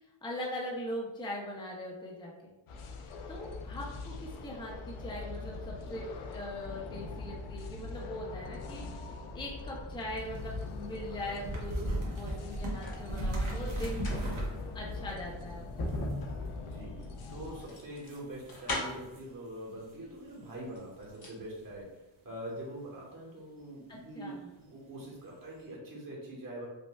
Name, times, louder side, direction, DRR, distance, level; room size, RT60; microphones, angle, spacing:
voice 1, 0.2-2.5 3.3-6.0 6.3-8.9 9.3-14.1 14.7-15.9 23.9-24.5, left 1 dB, 10° left, -3 dB, 0.5 m, -41 dB
sound 1, 2.7-17.7, left 3 dB, 90° left, 0.6 m, -42 dB
sound 2, 10.1-14.9 15.9-16.5 17.7-17.8 18.1-19.3 19.8-19.9 22.6-22.7, right 1 dB, 75° right, 1.0 m, -36 dB
sound 3, 12.3-13.1 13.8-19.2 20.1-20.2 20.6-21.4 21.7-21.8, left 1 dB, 50° left, 0.8 m, -39 dB
voice 2, 16.7-17.0 17.3-21.9 22.2-26.7, right 1 dB, 40° right, -4 dB, 1.2 m, -44 dB
5.2 x 2.2 x 2.2 m, 1.0 s
wide cardioid pair, 140°, 49 cm